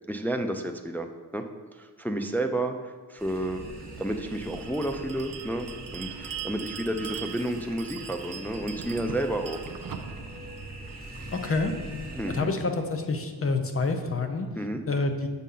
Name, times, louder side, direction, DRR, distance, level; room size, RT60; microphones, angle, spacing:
voice 1, 0.1-1.1 1.3-1.4 1.7-3.6 4.0-9.7 12.1-12.5 14.6-14.8, right 1 dB, 5° left, 5 dB, 0.3 m, -31 dB
sound 1, 3.2-12.4, right 1 dB, 20° right, 1.4 m, -42 dB
Bell, 4.3-11.6, right 8 dB, 55° right, 0.5 m, -42 dB
voice 2, 11.3-11.7 12.3-14.5 14.9-15.3, left 3 dB, 35° left, 6 dB, 0.7 m, -27 dB
7.2 x 5.5 x 3.8 m, 1.4 s
wide cardioid pair, 115°, 41 cm